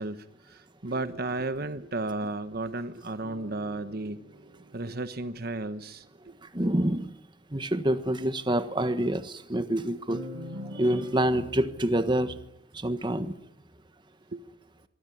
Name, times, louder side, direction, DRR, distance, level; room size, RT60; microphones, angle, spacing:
voice 1, 0.0-4.2 4.7-6.0 14.3-14.4, right 2 dB, 50° right, 1.1 m, -33 dB
sound 1, 3.2-5.8 10.1-11.8, equal, 85° right, 6.5 m, -44 dB
voice 2, 6.4-7.1 7.5-10.3 10.7-12.4 12.7-13.4, right 1 dB, 25° right, 1.4 m, -27 dB
24.5 x 22.0 x 10.0 m
head